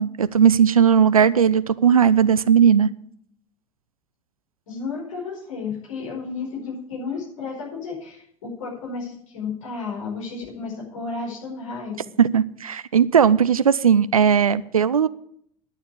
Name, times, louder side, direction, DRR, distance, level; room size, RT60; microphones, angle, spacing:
voice 1, 0.0-2.9 12.2-15.1, right 7 dB, 85° right, 16 dB, 0.4 m, -17 dB
voice 2, 4.7-11.9, left 4 dB, 70° left, -2 dB, 4.9 m, -32 dB
11.0 x 6.9 x 8.4 m, 0.67 s
figure-of-eight pair, 70°, 18 cm